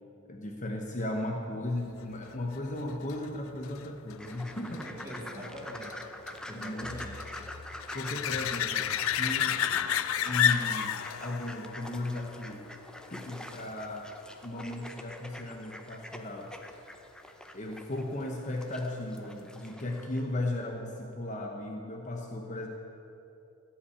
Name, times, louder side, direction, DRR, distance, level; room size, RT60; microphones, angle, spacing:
voice 1, 0.2-4.8 6.5-6.9 7.9-9.6 10.2-12.7 13.1-14.1 14.4-16.5 17.5-22.7, left 1 dB, 35° left, 1 dB, 0.8 m, -36 dB
sound 1, 2.3-13.5 19.2-19.3, left 10 dB, 65° left, 0.4 m, -33 dB
sound 2, 4.2-20.2, left 1 dB, 5° left, 0.5 m, -46 dB
voice 2, 4.2-7.2, right 1 dB, 15° right, -4 dB, 2.1 m, -44 dB
14.0 x 5.9 x 8.5 m, 2.9 s
head